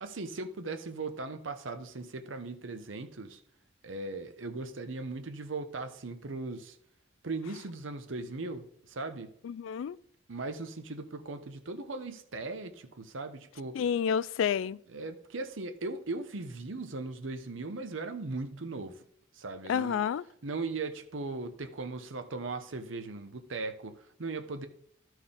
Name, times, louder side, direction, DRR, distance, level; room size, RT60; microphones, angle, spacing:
voice 1, 0.0-3.4 3.8-6.8 7.2-9.3 10.3-13.8 14.9-19.0 19.3-20.0 20.4-24.7, right 3 dB, 90° right, 0.9 m, -38 dB
voice 2, 9.4-10.0 13.8-14.8 19.7-20.2, left 7 dB, 90° left, 0.3 m, -29 dB
13.5 x 4.5 x 3.6 m
head